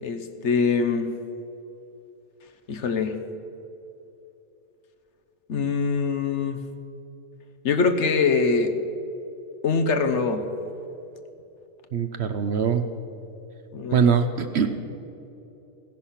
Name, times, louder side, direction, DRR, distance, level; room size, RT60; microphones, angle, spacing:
voice 1, 0.0-1.1 2.7-3.1 5.5-6.6 7.6-8.7 9.6-10.4 13.7-14.0, left 4 dB, 60° left, 7 dB, 1.1 m, -23 dB
voice 2, 11.9-12.9 13.9-14.7, right 6 dB, 55° right, 9 dB, 0.9 m, -22 dB
16.0 x 10.5 x 5.8 m, 2.9 s
omnidirectional pair, 1.5 m